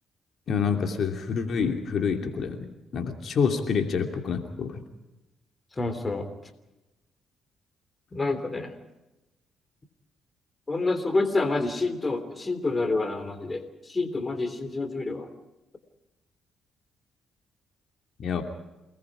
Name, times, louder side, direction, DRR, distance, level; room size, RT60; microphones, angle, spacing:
voice 1, 0.5-2.6 2.9-4.8 18.2-18.4, left 6 dB, 60° left, 4 dB, 2.8 m, -27 dB
voice 2, 5.8-6.3 8.1-8.7 10.7-13.6 13.9-15.3, left 3 dB, 25° left, 10 dB, 3.2 m, -28 dB
28.5 x 20.0 x 4.9 m, 0.99 s
cardioid pair, 90°, 0 cm